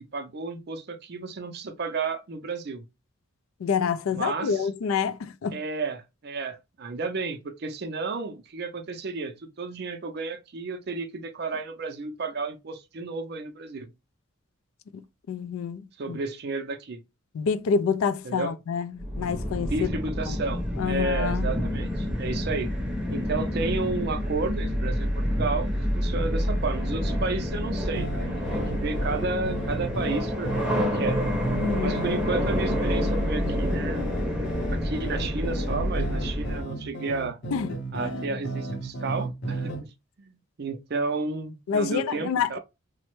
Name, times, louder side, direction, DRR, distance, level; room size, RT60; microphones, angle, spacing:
voice 1, 0.0-2.8 4.1-4.7 5.5-13.9 16.0-17.0 18.2-18.5 19.7-22.7 23.1-31.2 31.8-34.1 34.7-37.4 37.9-39.9 40.2-42.6, right 3 dB, 50° right, 0.4 m, -32 dB
voice 2, 3.6-5.6 14.9-15.0 15.3-15.8 16.1-16.2 17.3-19.9 20.3-20.4 20.8-21.5 31.6-32.2 37.5-37.7 38.0-38.1 41.7-42.6, left 6 dB, 75° left, 0.3 m, -27 dB
sound 1, 19.0-36.6, equal, 5° right, 0.7 m, -28 dB
sound 2, 27.9-39.8, right 2 dB, 55° left, 0.7 m, -35 dB
3.2 x 2.0 x 3.0 m
head